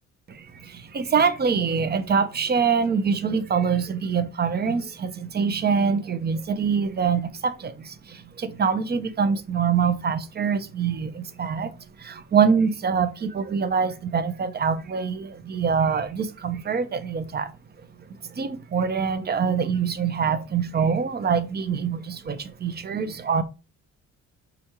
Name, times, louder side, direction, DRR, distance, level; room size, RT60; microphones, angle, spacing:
voice 1, 0.3-11.7 12.0-17.5 18.2-23.4, right 6 dB, 35° right, 0.6 m, -24 dB
5.0 x 3.6 x 2.9 m
cardioid pair, 90°, 30 cm